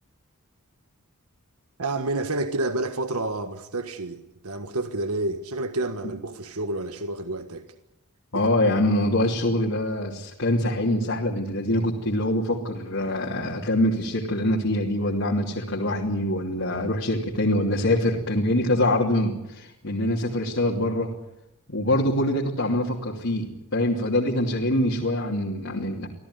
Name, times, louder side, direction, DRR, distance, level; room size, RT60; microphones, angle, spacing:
voice 1, 1.8-7.6 8.3-8.5, right 2 dB, 85° right, 1.6 m, -29 dB
voice 2, 8.3-21.1 21.7-26.1, left 1 dB, 60° left, 2.9 m, -24 dB
25.5 x 17.0 x 9.7 m
head